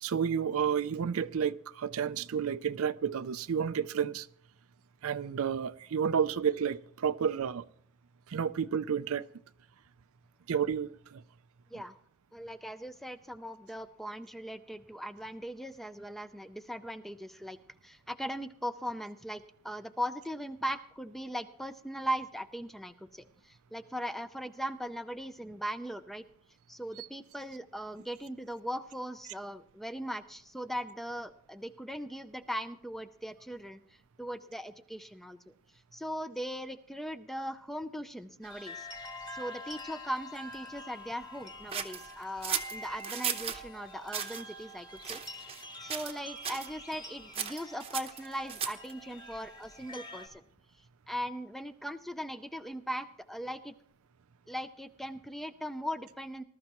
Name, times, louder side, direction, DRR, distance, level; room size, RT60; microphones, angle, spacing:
voice 1, 0.0-4.3 5.0-7.7 8.3-9.2 10.5-11.2 27.0-27.1, right 7 dB, 75° right, 0.4 m, -31 dB
voice 2, 12.3-17.6 17.8-26.2 26.7-33.8 34.2-35.5 35.9-38.9 39.3-45.2 45.5-50.4 51.1-53.7 54.5-56.4, equal, ahead, 0.5 m, -39 dB
sound 1, 38.4-50.3, left 1 dB, 20° left, 1.9 m, -46 dB
sound 2, 41.7-43.6 44.1-44.4 45.0-45.6 45.9-46.2 46.4-46.7 47.3-48.9, right 8 dB, 25° right, 0.9 m, -35 dB
20.0 x 13.0 x 3.0 m
head